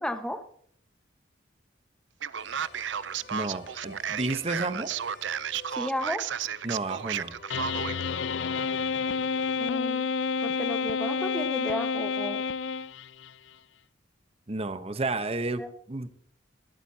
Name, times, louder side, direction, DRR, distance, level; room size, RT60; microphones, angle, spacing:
voice 1, 0.0-0.4 5.7-6.2 9.6-10.1 10.4-12.4 15.6-15.7, left 1 dB, 5° left, 8 dB, 1.3 m, -33 dB
Male speech man speaking, 2.2-8.0, right 8 dB, 75° right, 0.6 m, -33 dB
sound 1, 2.4-9.5, left 3 dB, 60° left, 3.6 m, -52 dB
voice 2, 3.3-4.9 6.6-7.4 14.5-16.1, right 2 dB, 35° right, 11 dB, 0.9 m, -31 dB
sound 2, 7.5-13.3, left 5 dB, 80° left, 0.6 m, -29 dB
21.0 x 13.5 x 2.8 m, 0.63 s
head